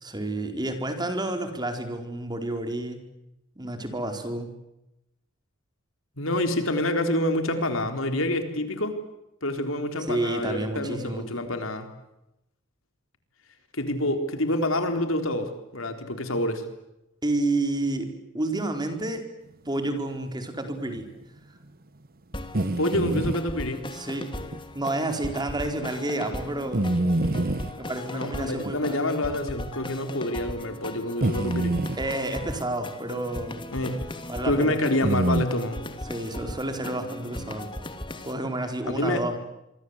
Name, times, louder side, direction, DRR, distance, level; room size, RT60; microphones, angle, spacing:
voice 1, 0.0-3.0 3.6-4.5 10.1-11.3 17.2-19.3 19.7-21.1 23.9-24.3 24.7-26.9 27.8-29.0 32.0-33.6 34.3-34.8 36.1-37.7 38.2-39.4, right 2 dB, 20° right, 6 dB, 4.5 m, -30 dB
voice 2, 6.2-9.0 9.4-11.9 13.7-16.6 22.8-23.8 28.1-31.7 33.7-34.0 34.4-35.8 38.9-39.2, left 1 dB, 85° left, 7 dB, 4.1 m, -27 dB
sound 1, 22.3-38.3, left 1 dB, 25° left, 2.6 m, -38 dB
sound 2, 22.5-23.4 24.5-24.6 25.3-25.4 26.7-27.7 28.7-28.8 29.9-30.0 31.2-32.0 35.0-35.5, right 1 dB, 50° right, 1.1 m, -25 dB
27.0 x 24.5 x 8.2 m, 0.88 s
head